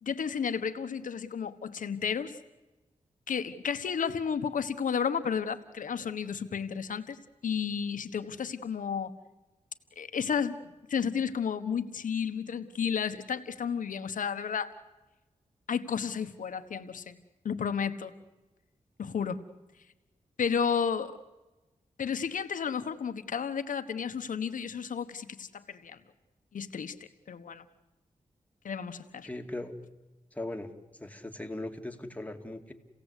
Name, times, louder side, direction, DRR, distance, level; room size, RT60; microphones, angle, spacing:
voice 1, 0.0-2.4 3.3-9.1 10.0-14.7 15.7-17.2 17.4-18.1 19.0-19.4 20.4-21.2 22.0-26.0 26.5-26.9 27.3-27.7 28.6-29.3, left 7 dB, 85° left, 10 dB, 1.2 m, -32 dB
voice 2, 29.2-29.8 30.3-30.7 31.0-32.7, left 1 dB, 10° left, 4 dB, 2.3 m, -38 dB
29.0 x 17.0 x 8.2 m, 1.1 s
cardioid pair, 65°, 13 cm